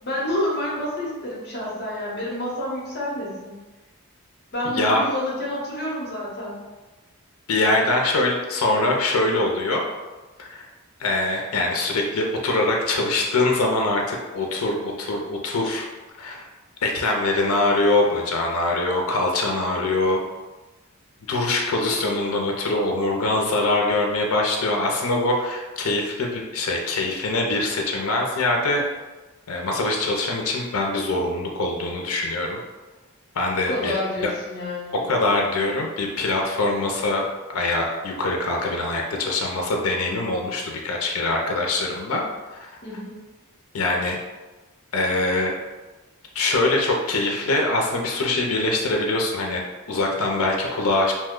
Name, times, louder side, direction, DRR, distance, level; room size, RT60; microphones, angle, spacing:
voice 1, 0.0-3.5 4.5-6.6 33.7-35.0 42.8-43.1, left 1 dB, 50° left, -5 dB, 0.8 m, -29 dB
voice 2, 4.6-5.1 7.5-9.8 10.4-10.7 11.0-15.9 16.2-16.5 16.8-20.2 21.3-28.8 29.5-32.6 33.3-34.3 34.9-37.2 37.5-42.2 42.7-42.8 43.7-44.2 44.9-45.5 46.3-49.6 49.9-51.1, left 2 dB, 75° left, 1 dB, 0.5 m, -23 dB
2.8 x 2.1 x 3.6 m, 1.2 s
head